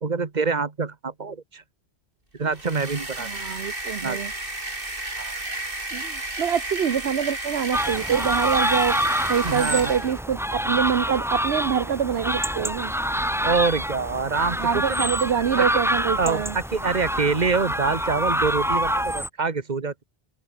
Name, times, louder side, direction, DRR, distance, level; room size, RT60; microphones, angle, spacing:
voice 1, 0.0-1.6 2.4-3.3 4.0-4.2 5.2-5.4 9.4-9.9 13.4-15.1 15.6-15.7 16.2-20.0, right 4 dB, 45° right, 1.7 m, -25 dB
sound 1, 2.5-10.2, right 2 dB, 60° right, 4.7 m, -33 dB
voice 2, 3.3-4.3 5.9-9.0 9.3-12.9 14.6-16.6, right 8 dB, 85° right, 1.2 m, -25 dB
sound 2, 7.7-19.3, equal, 5° right, 1.4 m, -26 dB
open air
omnidirectional pair, 1.0 m